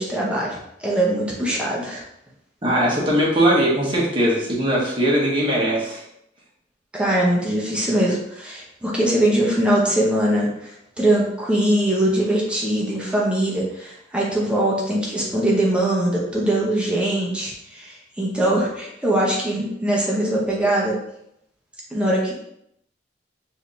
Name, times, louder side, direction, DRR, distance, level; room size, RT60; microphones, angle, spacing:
voice 1, 0.0-2.0 6.9-21.0 21.9-22.3, right 1 dB, 5° right, -4 dB, 0.8 m, -22 dB
voice 2, 2.6-6.0, right 1 dB, 30° right, -4 dB, 1.2 m, -20 dB
4.8 x 2.7 x 3.2 m, 0.76 s
head